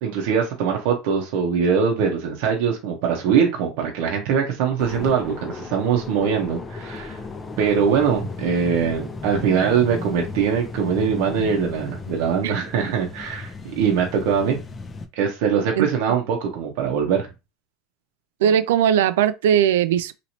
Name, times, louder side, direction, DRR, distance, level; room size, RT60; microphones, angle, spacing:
voice 1, 0.0-7.2 7.6-14.6 15.2-17.3, right 7 dB, 70° right, 0.7 m, -22 dB
sound 1, 4.8-15.1, left 3 dB, 25° left, 0.5 m, -35 dB
voice 2, 15.8-16.2 18.4-20.1, right 9 dB, 85° right, 0.3 m, -19 dB
3.0 x 2.9 x 2.7 m
supercardioid pair, 115°, 0 cm